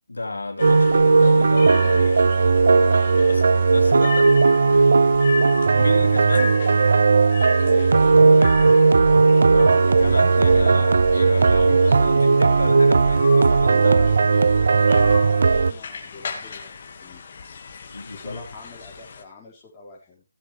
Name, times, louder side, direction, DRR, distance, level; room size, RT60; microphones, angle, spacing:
voice 1, 0.1-2.2 3.3-4.2 5.8-6.5 9.5-14.0 17.9-18.4, left 2 dB, 85° left, 3 dB, 3.0 m, -31 dB
sound 1, 0.6-19.2, left 5 dB, 45° left, 2.1 m, -36 dB
sound 2, 0.6-15.7, right 4 dB, 60° right, 0.6 m, -16 dB
voice 2, 2.6-5.0 7.6-8.9 13.8-17.2 18.1-20.2, left 3 dB, 15° left, -5 dB, 5.1 m, -42 dB
16.5 x 8.2 x 3.4 m, 0.25 s
figure-of-eight pair, 155°, 0 cm